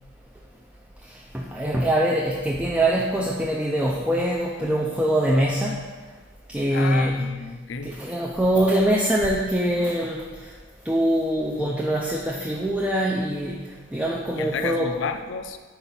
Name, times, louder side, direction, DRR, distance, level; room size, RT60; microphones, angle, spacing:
voice 1, 1.1-5.8 6.5-7.4 7.8-10.5 10.9-14.9, right 1 dB, 5° right, -3 dB, 0.4 m, -23 dB
voice 2, 6.7-8.0 14.3-15.6, left 5 dB, 60° left, 8 dB, 0.4 m, -31 dB
4.8 x 4.3 x 5.4 m, 1.4 s
head